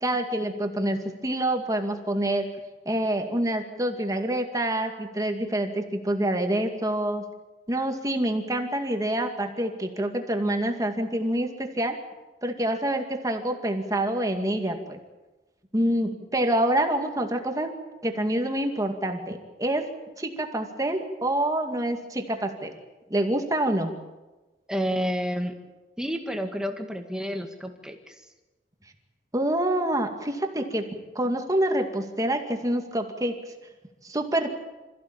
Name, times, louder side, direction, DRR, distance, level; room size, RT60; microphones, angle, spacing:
voice 1, 0.0-2.5 2.9-7.2 7.7-12.0 12.4-15.0 15.7-17.7 18.0-19.8 20.2-22.7 23.1-23.9 29.3-30.8 31.2-33.3 34.0-34.5, right 1 dB, 20° right, 4 dB, 2.2 m, -26 dB
voice 2, 24.7-25.5 26.0-28.2, equal, 5° right, 4 dB, 2.0 m, -30 dB
26.5 x 15.5 x 8.9 m, 1.2 s
head